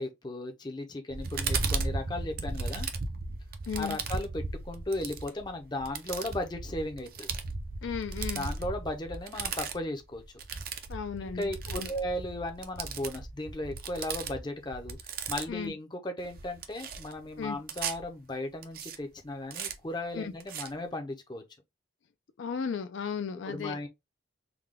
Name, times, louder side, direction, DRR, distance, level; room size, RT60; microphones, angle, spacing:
voice 1, 0.0-2.9 3.7-7.3 8.3-10.2 11.2-21.4 23.5-23.9, left 1 dB, 20° left, 0.5 m, -36 dB
sound 1, 1.1-15.7 16.2-18.0 18.6-19.0 19.5-19.7 20.4-20.7, right 4 dB, 50° right, 0.5 m, -36 dB
voice 2, 3.7-4.0 7.8-8.5 10.9-11.9 15.5-15.7 17.4-17.6 20.1-20.3 22.4-23.8, left 6 dB, 70° left, 0.4 m, -35 dB
3.6 x 2.2 x 3.2 m
head